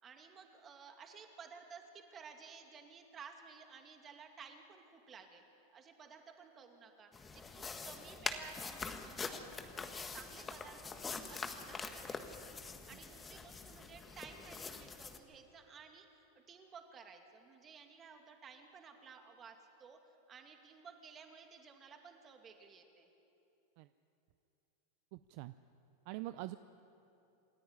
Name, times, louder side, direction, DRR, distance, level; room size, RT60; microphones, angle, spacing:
voice 1, 0.0-5.4 5.7-9.6 10.1-12.4 12.7-23.1, right 6 dB, 30° right, 4 dB, 2.5 m, -55 dB
sound 1, 7.1-15.2, left 4 dB, 20° left, 1.4 m, -44 dB
voice 2, 25.1-25.5 26.1-26.6, right 17 dB, 60° right, 13 dB, 0.5 m, -44 dB
27.5 x 10.0 x 9.8 m, 2.8 s
hypercardioid pair, 105°, 0 cm